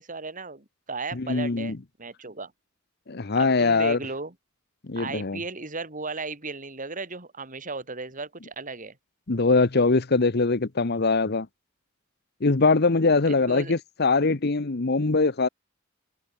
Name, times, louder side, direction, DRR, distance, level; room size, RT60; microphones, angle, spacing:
voice 1, 0.0-1.7 2.0-2.5 3.3-4.3 5.0-9.0 13.3-13.7, right 3 dB, 40° right, 4.0 m, -35 dB
voice 2, 1.1-1.8 3.1-4.0 4.9-5.4 9.3-11.5 12.4-15.5, left 3 dB, 55° left, 1.0 m, -22 dB
head